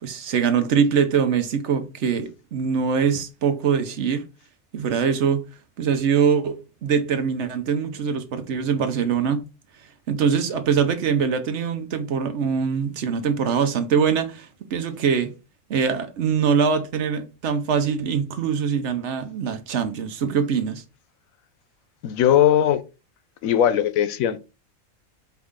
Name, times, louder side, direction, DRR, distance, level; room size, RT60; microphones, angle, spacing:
voice 1, 0.0-4.2 4.7-5.4 5.8-9.4 10.1-15.3 15.7-20.8, right 6 dB, 65° right, 1.0 m, -23 dB
voice 2, 22.0-22.8 23.4-24.4, left 10 dB, 85° left, 1.0 m, -19 dB
4.7 x 2.6 x 3.6 m
omnidirectional pair, 1.4 m